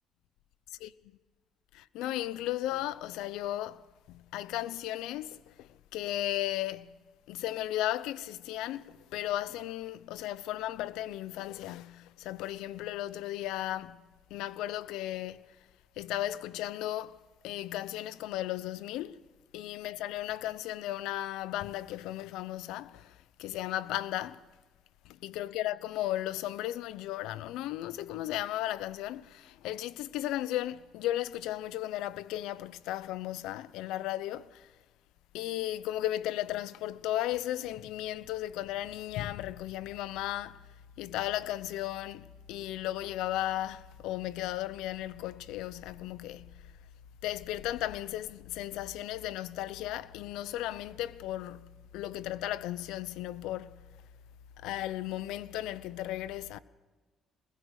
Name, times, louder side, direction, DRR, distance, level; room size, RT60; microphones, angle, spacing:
voice 1, 1.7-7.0 7.3-15.5 16.0-17.2 17.4-19.2 19.5-24.5 25.0-34.7 35.3-40.6 41.0-46.7 47.2-53.9 54.6-56.6, left 14 dB, 85° left, 0.8 m, -35 dB
23.0 x 21.0 x 6.5 m
supercardioid pair, 70°, 0 cm